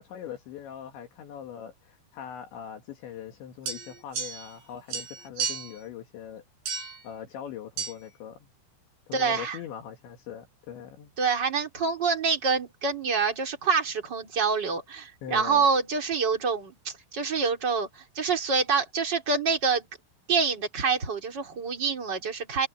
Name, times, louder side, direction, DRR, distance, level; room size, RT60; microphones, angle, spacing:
voice 1, 0.0-6.4 7.0-8.5 9.1-11.1 15.2-15.7, left 9 dB, 70° left, 4.1 m, -41 dB
sound 1, 3.7-4.6 4.9-5.8 6.7-7.0 7.8-7.9, right 6 dB, 60° right, 8.1 m, -33 dB
voice 2, 9.1-9.6 11.2-19.9 20.3-22.7, right 5 dB, 25° right, 3.5 m, -26 dB
omnidirectional pair, 5.7 m